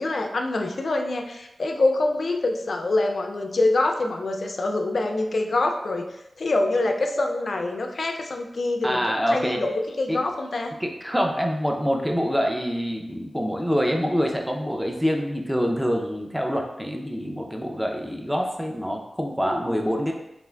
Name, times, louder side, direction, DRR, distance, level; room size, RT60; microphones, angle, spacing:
voice 1, 0.0-6.1 6.4-10.7, left 2 dB, 70° left, 4 dB, 0.3 m, -25 dB
voice 2, 8.8-9.6 10.1-10.2 10.8-20.1, equal, 5° right, 2 dB, 0.5 m, -25 dB
3.4 x 2.5 x 2.2 m, 0.88 s
cardioid pair, 50°, 0 cm